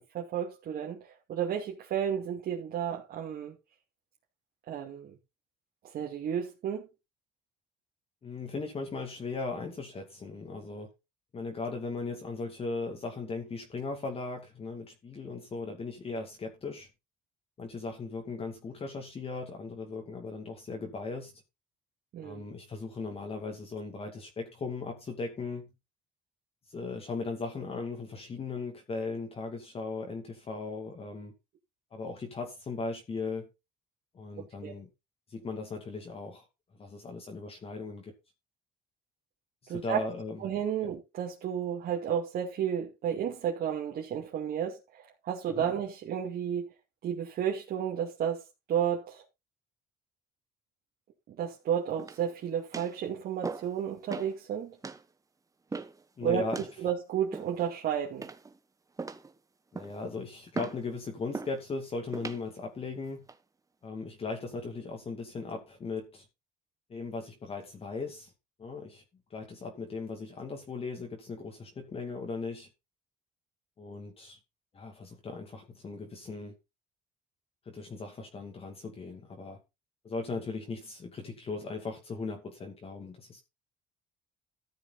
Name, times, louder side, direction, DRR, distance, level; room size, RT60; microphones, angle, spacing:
voice 1, 0.1-1.0 1.3-3.5 4.7-5.2 5.9-6.9 22.1-22.4 34.6-34.7 39.7-40.0 40.4-46.7 47.0-49.2 51.3-54.8 56.2-56.4 56.8-58.3, right 9 dB, 65° right, 2.6 m, -32 dB
voice 2, 8.2-10.9 11.3-16.9 17.6-21.4 22.2-25.7 26.7-31.3 31.9-33.5 34.1-34.9 35.3-36.4 36.8-38.1 39.6-40.4 40.8-40.9 45.5-45.7 55.7-55.8 56.2-56.6 59.7-63.3 63.8-66.2 66.9-68.3 68.6-69.0 69.3-72.7 73.8-74.4 74.7-76.5 77.7-79.6 80.0-83.4, left 3 dB, 35° left, 2.4 m, -38 dB
sound 1, 52.0-52.3 52.7-53.0 53.4-53.8 54.1-54.3 54.8-55.0 55.7-56.0 56.5-56.8 57.3-57.7 58.2-58.6 59.0-59.3 59.7-60.0 60.5-60.8 61.3-61.6 62.1-62.4 63.0-63.4, right 4 dB, 20° right, 1.3 m, -39 dB
14.0 x 7.0 x 4.1 m
cardioid pair, 110°, 17 cm